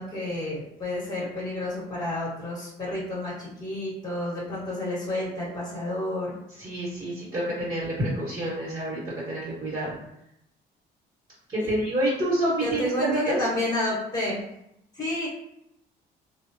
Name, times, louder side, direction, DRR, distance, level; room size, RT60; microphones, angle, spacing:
voice 1, 0.0-6.3 11.6-11.7 12.6-14.4 14.9-15.3, left 1 dB, 20° left, -6 dB, 1.2 m, -30 dB
voice 2, 6.6-10.0 11.5-13.5, right 1 dB, 30° right, -8 dB, 1.2 m, -28 dB
3.1 x 2.1 x 2.6 m, 0.80 s
cardioid pair, 110°, 17 cm